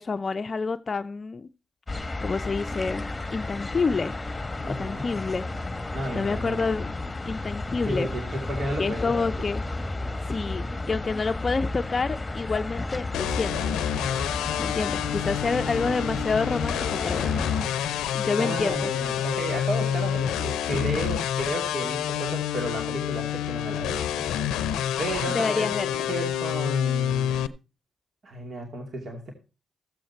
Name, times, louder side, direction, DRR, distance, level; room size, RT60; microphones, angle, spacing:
voice 1, 0.0-1.5 2.2-3.1 3.3-4.1 4.7-5.5 6.1-7.0 7.3-8.1 8.8-9.6 10.2-13.8 14.6-16.8 17.0-17.4 18.1-18.9 24.9-25.0 25.3-26.1, left 4 dB, 45° left, 9 dB, 0.5 m, -28 dB
sound 1, 1.9-17.7, left 2 dB, 25° left, 1.1 m, -33 dB
voice 2, 4.6-5.1 5.9-6.7 7.8-9.5 15.3-16.2 18.4-24.3 25.0-27.5 28.2-29.3, right 1 dB, 55° right, 2 dB, 2.6 m, -33 dB
sound 2, 13.1-27.5, left 10 dB, 85° left, 0.6 m, -28 dB
14.5 x 7.7 x 4.4 m, 0.32 s
supercardioid pair, 50°, 0 cm